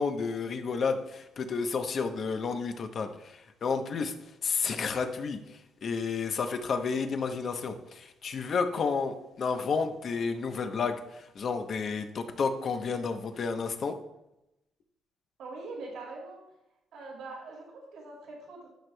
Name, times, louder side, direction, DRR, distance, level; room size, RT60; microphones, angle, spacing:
voice 1, 0.0-4.1 4.4-14.0, left 5 dB, 55° left, 7 dB, 0.9 m, -31 dB
voice 2, 15.4-16.4 16.9-18.7, right 3 dB, 80° right, -1 dB, 2.1 m, -43 dB
11.5 x 6.2 x 2.3 m, 0.90 s
cardioid pair, 90°, 0 cm